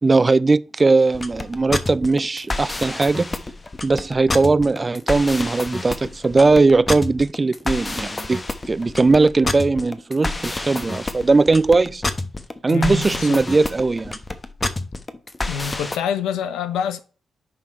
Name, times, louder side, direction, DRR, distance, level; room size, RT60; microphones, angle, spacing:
voice 1, 0.0-3.3 3.8-8.4 8.7-12.0 12.6-14.2, right 3 dB, 35° right, 0.4 m, -18 dB
sound 1, 1.1-16.0, left 2 dB, 30° left, 1.1 m, -28 dB
voice 2, 12.7-13.4 15.5-17.0, left 7 dB, 80° left, 0.7 m, -26 dB
10.5 x 3.7 x 4.4 m
hypercardioid pair, 45°, 0 cm